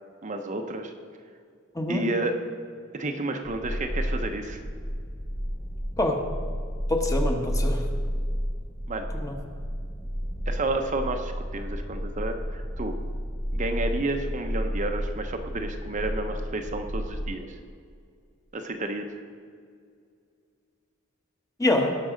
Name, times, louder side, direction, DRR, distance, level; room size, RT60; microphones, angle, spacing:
voice 1, 0.2-0.9 1.9-2.3 2.9-4.6 8.9-9.1 10.5-12.9 13.5-17.6 18.5-19.1, right 2 dB, 40° right, 5 dB, 0.7 m, -31 dB
voice 2, 1.7-2.1 6.0-6.2 6.9-7.9 9.2-9.4 21.6-22.0, left 1 dB, 15° left, 3 dB, 1.1 m, -25 dB
sound 1, 3.4-17.3, equal, 40° left, 2.3 m, -31 dB
18.0 x 6.0 x 5.1 m, 2.2 s
head